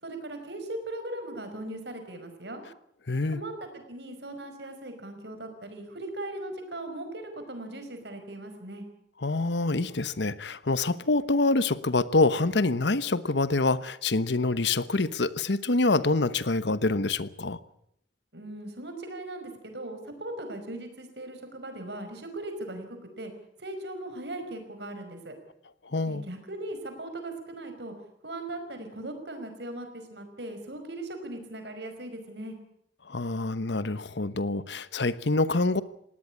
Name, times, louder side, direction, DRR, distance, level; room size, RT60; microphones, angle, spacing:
voice 1, 0.0-2.6 3.3-8.8 18.3-23.3 23.6-25.3 26.1-27.9 28.2-32.6, right 1 dB, 65° right, 7 dB, 5.2 m, -39 dB
voice 2, 3.1-3.4 9.2-17.6 25.9-26.2 33.1-35.8, left 3 dB, 70° left, 16 dB, 1.0 m, -26 dB
19.5 x 17.5 x 9.8 m, 0.72 s
head